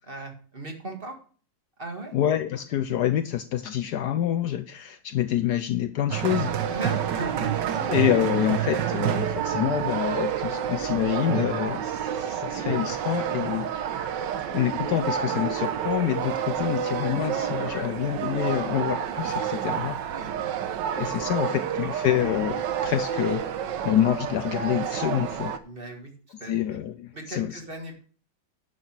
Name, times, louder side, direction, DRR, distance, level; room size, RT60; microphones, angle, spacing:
voice 1, 0.1-1.2 1.8-2.1 6.7-7.8 17.6-17.9 18.3-19.4 19.7-19.8 20.1-20.3 20.7-21.3 25.6-26.1 26.4-26.6 27.1-28.0, right 1 dB, 30° right, 4 dB, 2.0 m, -38 dB
voice 2, 2.1-6.5 7.8-14.1 14.5-20.0 21.0-23.4 23.8-25.5 26.5-27.6, left 11 dB, 70° left, 10 dB, 1.1 m, -27 dB
sound 1, 6.1-25.6, right 9 dB, 70° right, 1.5 m, -29 dB
11.0 x 6.2 x 6.0 m, 0.41 s
omnidirectional pair, 2.0 m